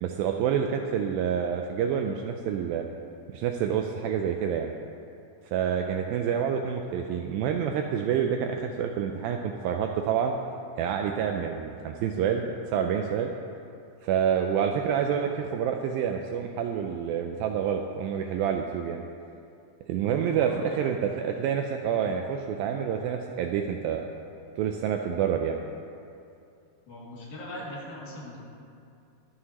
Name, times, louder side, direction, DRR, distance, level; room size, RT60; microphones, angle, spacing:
voice 1, 0.0-2.8 3.3-4.7 5.5-10.3 10.8-13.3 14.0-19.0 19.9-24.0 24.6-25.6, right 8 dB, 85° right, 4 dB, 2.1 m, -28 dB
voice 2, 20.0-20.8 26.9-28.4, left 1 dB, 65° left, -6 dB, 4.0 m, -41 dB
22.0 x 7.7 x 2.9 m, 2.5 s
omnidirectional pair, 4.6 m